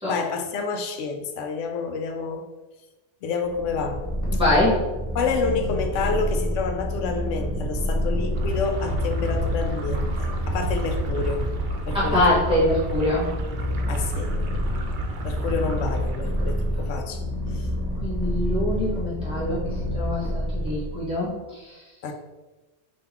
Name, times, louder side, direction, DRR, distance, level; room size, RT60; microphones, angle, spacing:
voice 1, 0.0-2.5 3.2-4.0 4.3-4.4 5.1-11.5 11.8-12.2 13.9-14.3 15.2-17.2 17.5-17.7 22.0-22.1, left 4 dB, 90° left, 4 dB, 0.9 m, -29 dB
Purr, 3.4-21.2, equal, 15° left, 1.0 m, -28 dB
voice 2, 4.3-4.8 11.9-13.2 18.0-20.2 20.5-21.7, left 1 dB, 5° right, -10 dB, 1.4 m, -24 dB
sound 1, 8.3-16.9, right 2 dB, 60° right, 0.6 m, -30 dB
3.8 x 2.7 x 4.2 m, 1.1 s
omnidirectional pair, 1.2 m